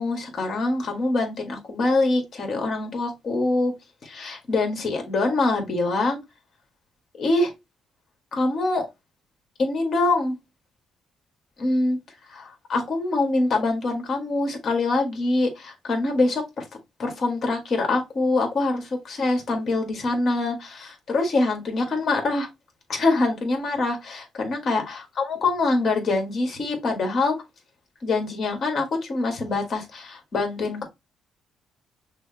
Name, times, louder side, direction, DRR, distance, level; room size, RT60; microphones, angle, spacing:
voice 1, 0.0-3.7 4.0-6.2 7.2-7.5 8.3-8.9 9.6-10.3 11.6-12.0 12.3-16.6 17.0-22.5 22.9-27.3 28.0-30.9, left 2 dB, 55° left, 1.6 m, -24 dB
6.0 x 2.1 x 2.8 m
cardioid pair, 90°, 0 cm